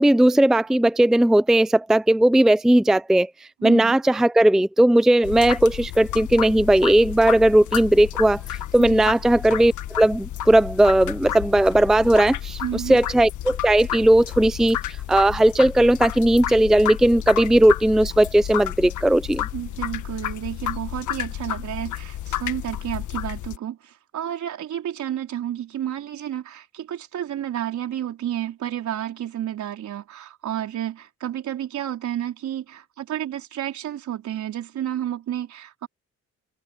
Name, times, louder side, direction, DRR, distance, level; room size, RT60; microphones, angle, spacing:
voice 1, 0.0-3.3 3.6-8.4 8.7-14.8 15.1-19.5, right 1 dB, ahead, 0.5 m, -17 dB
voice 2, 3.6-4.0 8.8-9.1 12.6-13.0 19.5-35.9, right 11 dB, 70° right, 4.5 m, -31 dB
sound 1, 5.2-23.6, left 12 dB, 75° left, 1.6 m, -31 dB
cardioid pair, 90°, 30 cm